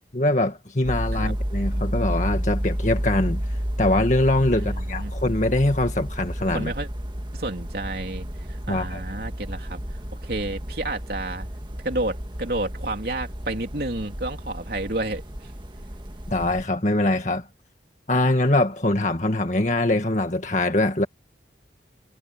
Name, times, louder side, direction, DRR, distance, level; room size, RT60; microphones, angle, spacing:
voice 1, 0.1-3.4 3.8-6.7 8.7-9.0 16.3-17.5 18.1-21.1, left 1 dB, 40° left, 1.8 m, -23 dB
sound 1, 0.8-16.6, equal, 25° right, 1.7 m, -31 dB
voice 2, 1.1-1.6 4.6-5.1 6.5-6.9 7.3-9.8 10.2-11.5 11.7-15.5, right 2 dB, 55° right, 3.5 m, -31 dB
head